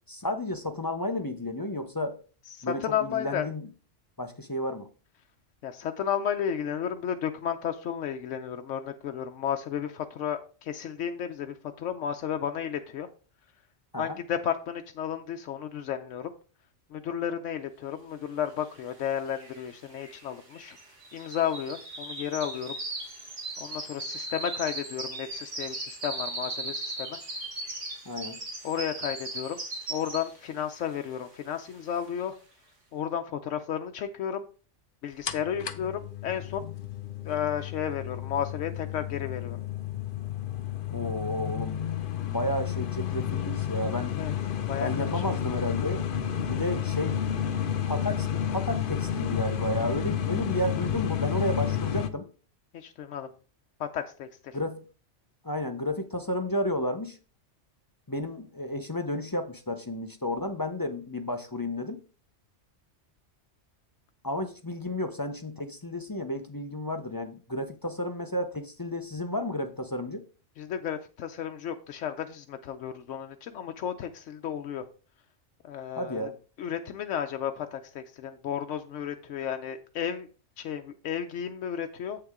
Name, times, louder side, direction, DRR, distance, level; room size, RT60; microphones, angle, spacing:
voice 1, 0.1-2.2 2.6-3.7 4.2-4.9 13.9-14.2 28.1-28.4 40.9-41.8 42.2-44.2 44.8-46.1 46.4-47.2 47.9-52.3 54.5-54.8 55.4-57.2 58.1-62.0 64.2-70.2 76.0-76.4, left 1 dB, 25° left, 0.5 m, -32 dB
voice 2, 2.6-3.5 5.6-13.1 14.0-16.3 16.9-20.8 21.1-22.7 23.6-27.2 28.6-29.6 29.9-32.4 32.9-34.4 35.0-36.7 37.2-39.6 44.2-44.3 44.7-45.2 52.7-53.3 53.8-54.6 70.6-74.8 75.6-76.3 76.6-80.3 80.6-82.2, left 9 dB, 90° left, 1.0 m, -33 dB
sound 1, 18.8-18.9 19.1-30.5 30.9-31.2 31.7-31.8, right 2 dB, 80° right, 2.4 m, -38 dB
sound 2, 35.3-52.1, left 9 dB, 55° left, 0.8 m, -31 dB
8.0 x 6.7 x 3.6 m
omnidirectional pair, 1.2 m